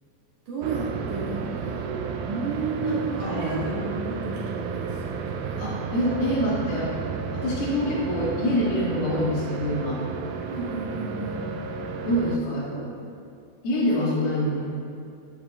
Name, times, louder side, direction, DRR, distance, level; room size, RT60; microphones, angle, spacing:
voice 1, 0.5-1.9 2.3-5.7 10.5-11.5 12.7-13.1 13.8-14.3, right 4 dB, 65° right, -5 dB, 2.2 m, -33 dB
sound 1, 0.6-12.4, right 5 dB, 80° right, 2.3 m, -32 dB
voice 2, 2.8-3.6 5.6-6.9 7.3-10.0 12.0-12.7 13.6-14.6, left 1 dB, 75° left, -9 dB, 3.7 m, -26 dB
12.0 x 8.6 x 2.3 m, 2.5 s
omnidirectional pair, 4.4 m